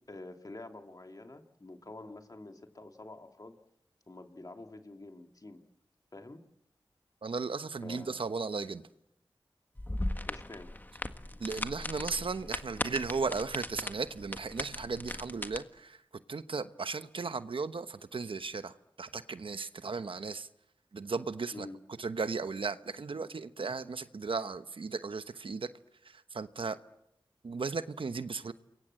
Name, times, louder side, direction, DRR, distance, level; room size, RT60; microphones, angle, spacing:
voice 1, 0.1-3.6 4.1-5.6 6.1-6.4 7.8-8.3 10.3-10.7 21.5-21.8, left 2 dB, 45° left, 2.6 m, -47 dB
voice 2, 7.2-8.8 11.4-16.0 16.3-20.5 20.9-21.7 22.0-25.7 26.0-26.8 27.4-28.5, right 4 dB, 80° right, 1.0 m, -36 dB
sound 1, 9.8-15.6, left 1 dB, 20° left, 1.6 m, -38 dB
28.5 x 23.0 x 7.7 m
wide cardioid pair, 55°, 9 cm